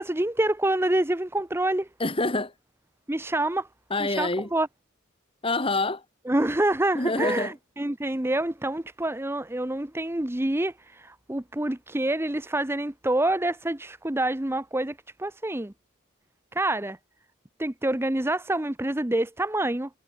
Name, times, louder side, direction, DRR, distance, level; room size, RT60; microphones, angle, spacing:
voice 1, 0.0-1.9 3.1-3.7 4.0-4.7 6.3-15.7 16.5-17.0 17.6-19.9, right 1 dB, 10° right, 0.8 m, -27 dB
voice 2, 2.0-2.5 3.9-4.5 5.4-6.0 6.9-7.5, left 2 dB, 25° left, 2.2 m, -26 dB
head